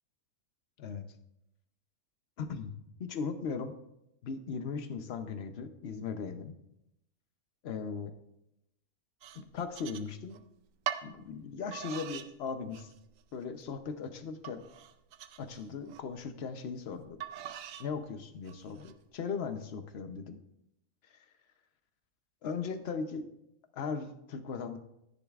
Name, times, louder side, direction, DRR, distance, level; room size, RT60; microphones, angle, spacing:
voice 1, 2.4-2.7 3.0-3.7 4.2-6.5 7.6-8.1 9.3-10.4 11.0-12.9 13.3-14.6 15.4-17.2 17.8-20.4 21.1-21.3 22.4-23.3 23.7-24.8, left 5 dB, 55° left, 9 dB, 0.9 m, -38 dB
sound 1, 9.2-10.4 10.9-11.1 11.7-12.3 12.7-13.2 13.7-13.8 14.4-16.0 17.2-17.9 18.5-18.9, right 10 dB, 70° right, 0.9 m, -41 dB
13.5 x 10.5 x 2.4 m, 0.83 s
omnidirectional pair, 1.5 m